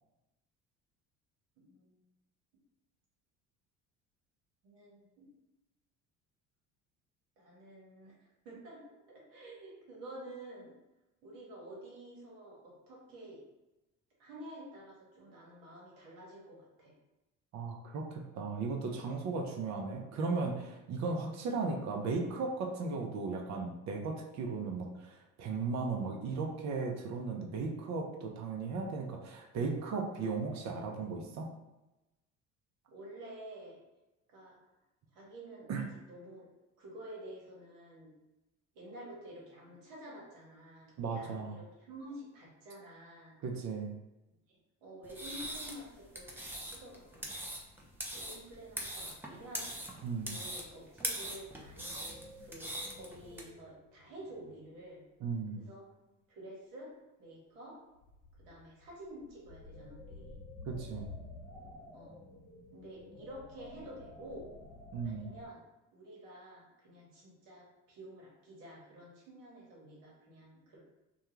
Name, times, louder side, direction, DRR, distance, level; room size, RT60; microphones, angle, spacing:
voice 1, 1.6-2.0 4.6-5.3 7.4-8.1 8.4-10.7 11.2-13.4 14.2-16.9 19.5-19.8 32.9-33.8 34.3-34.6 35.1-36.5 36.8-38.1 38.7-43.4 44.5-47.4 48.1-49.7 50.2-55.0 55.6-55.8 56.3-56.9 57.2-57.8 58.3-60.3 61.9-62.2 62.7-64.5 65.0-65.6 65.9-70.8, right 1 dB, 75° right, -3 dB, 1.1 m, -50 dB
voice 2, 17.5-31.5 35.7-35.8 41.0-41.6 43.4-44.0 50.0-50.3 55.2-55.6 60.7-61.1 64.9-65.3, right 4 dB, 45° right, 2 dB, 0.6 m, -36 dB
sound 1, 45.0-53.4, right 1 dB, 5° right, 0.5 m, -42 dB
sound 2, 51.6-55.0 55.6-55.9 57.9-65.5, left 2 dB, 55° left, 0.8 m, -52 dB
2.3 x 2.2 x 3.0 m, 0.98 s
hypercardioid pair, 60°, 37 cm